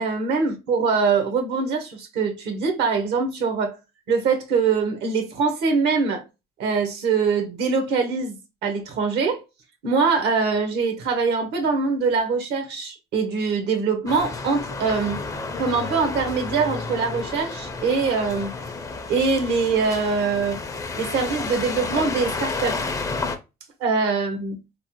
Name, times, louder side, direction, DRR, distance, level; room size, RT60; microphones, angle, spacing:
voice 1, 0.0-3.7 4.1-6.2 6.6-9.4 9.8-15.2 15.6-18.5 19.1-20.6 21.0-22.8 23.8-24.6, right 5 dB, 80° right, 0.9 m, -23 dB
sound 1, 14.1-23.4, left 3 dB, 20° left, 0.4 m, -31 dB
3.1 x 2.1 x 2.8 m
cardioid pair, 110°, 17 cm